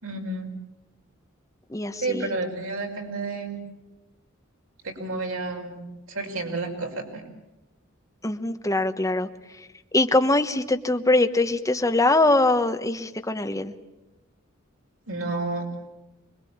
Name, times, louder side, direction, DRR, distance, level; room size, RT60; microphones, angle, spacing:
voice 1, 0.0-0.5 2.0-3.7 4.8-7.3 15.1-15.8, right 3 dB, 85° right, 2 dB, 5.5 m, -31 dB
voice 2, 1.7-2.3 8.2-9.3 9.5-13.7, left 2 dB, 15° left, 7 dB, 1.2 m, -23 dB
25.5 x 21.5 x 8.8 m, 1.0 s
head